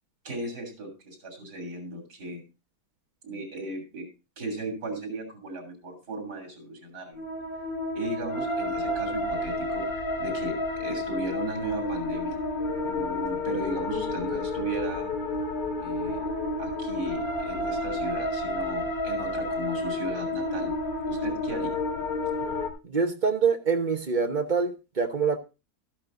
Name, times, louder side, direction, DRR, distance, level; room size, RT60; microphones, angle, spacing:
voice 1, 0.2-2.4 3.2-4.1 4.4-7.2 8.0-12.4 12.8-15.1 15.8-16.2 16.6-20.7 21.0-21.8, right 2 dB, 85° right, 3 dB, 3.6 m, -36 dB
sound 1, 7.2-22.7, left 2 dB, 70° left, 2.3 m, -30 dB
voice 2, 22.8-25.4, right 5 dB, 35° right, 5 dB, 1.1 m, -25 dB
12.5 x 11.5 x 2.6 m, 0.28 s
omnidirectional pair, 1.7 m